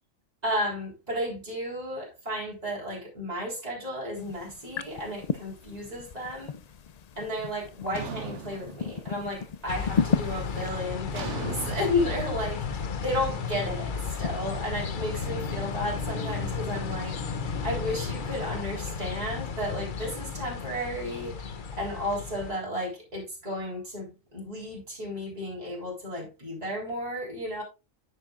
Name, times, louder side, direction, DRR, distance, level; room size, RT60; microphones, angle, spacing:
voice 1, 0.4-6.5 7.2-17.2 17.6-27.6, left 1 dB, 30° right, 3.8 m, -33 dB
sound 1, 4.2-10.7, left 6 dB, 80° left, 0.3 m, -34 dB
sound 2, 7.9-9.5 9.8-10.2 11.1-14.2, right 5 dB, 65° right, 1.3 m, -40 dB
sound 3, 9.7-22.5, left 5 dB, 45° left, 0.8 m, -33 dB
9.4 x 9.3 x 2.4 m
omnidirectional pair, 1.4 m